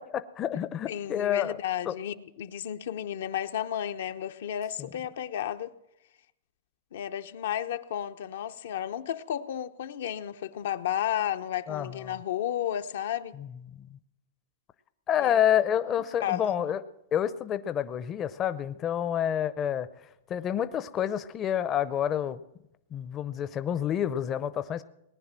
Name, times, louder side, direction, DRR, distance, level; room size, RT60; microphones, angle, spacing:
voice 1, 0.1-1.6 1.9-2.0 4.8-4.9 11.7-12.0 13.8-13.9 15.1-16.8 17.1-19.9 20.3-22.4 22.9-24.8, left 10 dB, 30° left, 0.6 m, -28 dB
voice 2, 0.9-5.7 6.9-13.3 15.2-15.4 16.2-16.5, left 10 dB, 75° left, 0.8 m, -33 dB
19.0 x 9.9 x 7.4 m
hypercardioid pair, 135°, 0 cm